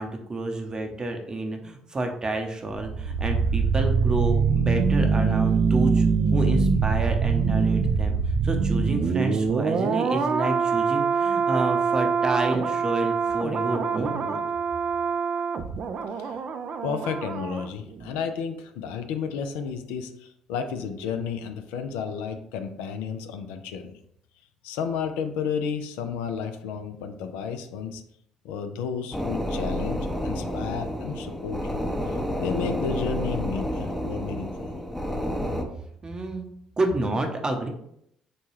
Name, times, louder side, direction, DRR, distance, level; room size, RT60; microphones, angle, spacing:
voice 1, 0.0-8.2 8.4-14.4 36.0-36.5 36.8-37.7, right 2 dB, 30° right, 3 dB, 0.7 m, -29 dB
sound 1, 2.7-17.7 17.9-18.1, right 5 dB, 50° right, 0.3 m, -24 dB
voice 2, 16.8-23.9 24.6-28.0 28.4-31.9 32.4-34.7, left 6 dB, 75° left, 7 dB, 0.3 m, -32 dB
sound 2, 29.1-35.6, equal, 10° left, 0.6 m, -30 dB
4.1 x 2.2 x 3.1 m, 0.72 s
hypercardioid pair, 50°, 3 cm